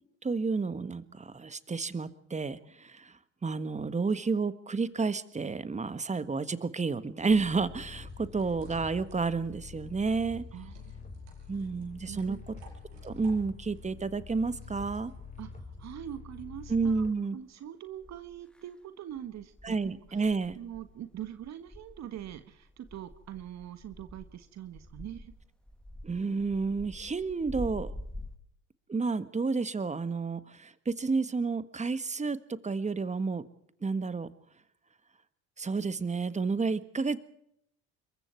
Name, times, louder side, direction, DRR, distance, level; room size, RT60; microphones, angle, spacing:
voice 1, 0.2-3.1 3.4-10.5 11.5-12.4 13.0-15.1 16.7-17.4 19.6-20.6 26.0-27.9 28.9-32.4 32.6-33.4 33.8-34.3 35.6-37.2, right 4 dB, 20° right, 14 dB, 1.6 m, -30 dB
sound 1, 7.1-15.8, right 5 dB, 85° right, 7.0 m, -59 dB
sound 2, 7.3-17.1, left 4 dB, 20° left, 4.4 m, -46 dB
voice 2, 10.5-10.9 11.5-11.7 12.1-12.4 15.4-17.0 17.3-19.8 20.1-20.3 20.5-25.3, right 11 dB, 50° right, 10 dB, 1.6 m, -43 dB
sound 3, 17.4-17.5 18.0-18.7 19.1-28.4, left 1 dB, 5° left, 2.0 m, -46 dB
26.5 x 22.5 x 4.6 m, 0.72 s
hypercardioid pair, 75°, 34 cm